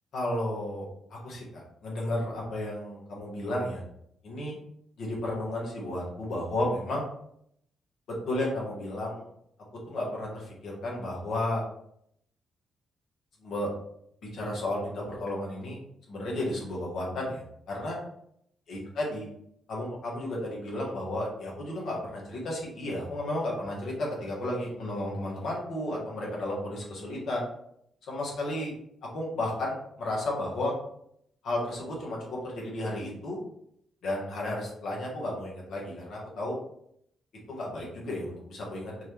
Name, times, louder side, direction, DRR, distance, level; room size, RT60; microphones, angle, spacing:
voice 1, 0.1-0.8 1.1-3.8 4.2-4.6 5.0-7.1 8.1-9.3 9.9-11.6 13.4-13.7 14.2-15.8 16.1-18.0 18.7-19.2 19.7-27.4 28.1-28.7 29.1-30.7 31.4-33.4 34.0-36.5 37.5-38.9, left 1 dB, 70° left, -3 dB, 1.7 m, -33 dB
4.6 x 2.9 x 3.4 m, 0.72 s
supercardioid pair, 55°, 0 cm